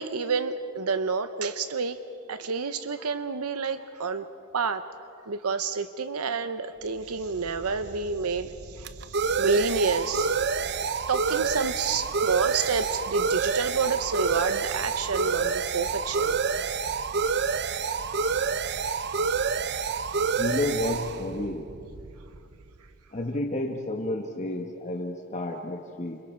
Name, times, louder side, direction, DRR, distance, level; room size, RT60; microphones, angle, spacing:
voice 1, 0.0-2.0 2.3-4.3 4.5-4.8 5.3-16.4 18.9-19.0, right 5 dB, 85° right, 10 dB, 0.8 m, -29 dB
sound 1, 7.2-22.6, right 5 dB, 50° right, 0.7 m, -28 dB
voice 2, 20.4-21.7 23.1-26.2, left 1 dB, 35° left, 2 dB, 1.4 m, -30 dB
29.5 x 27.5 x 4.6 m, 2.5 s
head